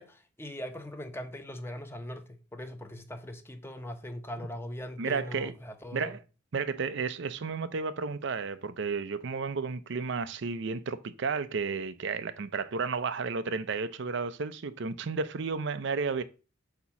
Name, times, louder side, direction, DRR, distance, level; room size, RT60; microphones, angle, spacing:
voice 1, 0.0-6.1, left 1 dB, 10° left, 0.9 m, -40 dB
voice 2, 5.0-5.5 5.9-6.2 6.5-16.2, right 4 dB, 65° right, 0.6 m, -32 dB
8.1 x 2.9 x 5.9 m
head